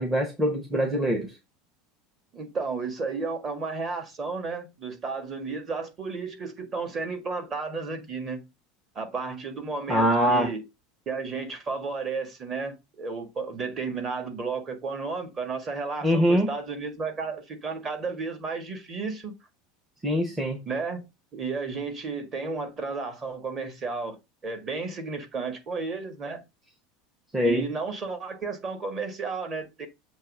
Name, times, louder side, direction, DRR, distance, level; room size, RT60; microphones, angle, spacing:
voice 1, 0.0-1.4 9.9-10.5 16.0-16.5 20.0-20.6 27.3-27.7, equal, 10° right, 1.1 m, -23 dB
voice 2, 2.3-8.4 9.0-10.6 11.1-19.3 20.7-21.1 21.3-24.2 24.4-26.4 27.4-29.9, right 4 dB, 25° right, 1.8 m, -33 dB
7.4 x 3.2 x 6.1 m
supercardioid pair, 165°, 0 cm